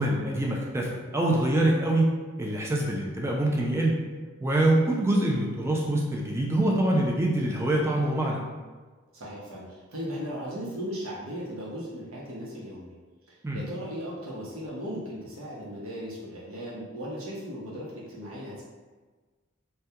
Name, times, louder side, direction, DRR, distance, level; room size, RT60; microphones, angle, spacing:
voice 1, 0.0-2.1 2.4-4.0 4.4-8.4 13.4-13.6, right 1 dB, 15° right, -2 dB, 0.3 m, -25 dB
voice 2, 9.1-12.9 13.3-18.6, equal, 80° right, -5 dB, 0.8 m, -37 dB
2.3 x 2.2 x 2.7 m, 1.3 s
head